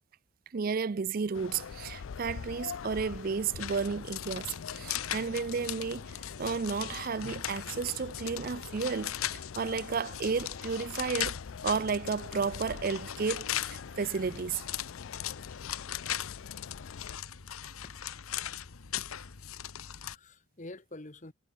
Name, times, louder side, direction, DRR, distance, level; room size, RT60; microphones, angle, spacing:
voice 1, 0.5-6.0 6.4-11.4 11.6-14.6, right 5 dB, 45° right, 0.4 m, -32 dB
sound 1, 1.3-17.2, left 6 dB, 65° left, 0.4 m, -45 dB
sound 2, 3.6-20.2, left 11 dB, 80° left, 1.0 m, -39 dB
voice 2, 19.0-19.4 20.0-21.3, left 2 dB, 35° left, 1.3 m, -48 dB
head